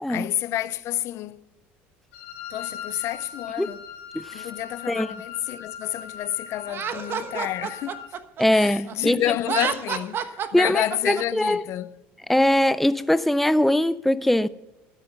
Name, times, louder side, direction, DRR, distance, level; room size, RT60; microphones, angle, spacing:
voice 1, 0.1-1.4 2.5-3.8 4.3-8.0 8.5-11.9, left 14 dB, 55° left, 0.5 m, -29 dB
Wind instrument woodwind instrument, 2.1-8.2, left 7 dB, 90° left, 2.2 m, -40 dB
voice 2, 4.1-4.4 4.9-5.1 8.4-9.2 10.5-11.6 12.3-14.5, left 1 dB, 5° left, 0.4 m, -21 dB
Laughter, 6.7-8.9 9.4-11.2, right 8 dB, 45° right, 1.2 m, -29 dB
13.0 x 9.1 x 6.6 m
supercardioid pair, 95°, 5 cm